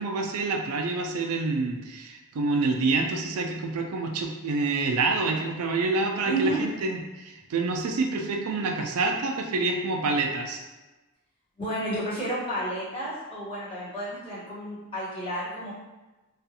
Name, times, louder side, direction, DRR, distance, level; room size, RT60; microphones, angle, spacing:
voice 1, 0.0-10.6, right 3 dB, 90° right, 3 dB, 0.4 m, -27 dB
voice 2, 6.2-6.6 11.6-15.7, right 2 dB, 25° left, -10 dB, 1.1 m, -31 dB
2.5 x 2.4 x 2.7 m, 1.1 s
head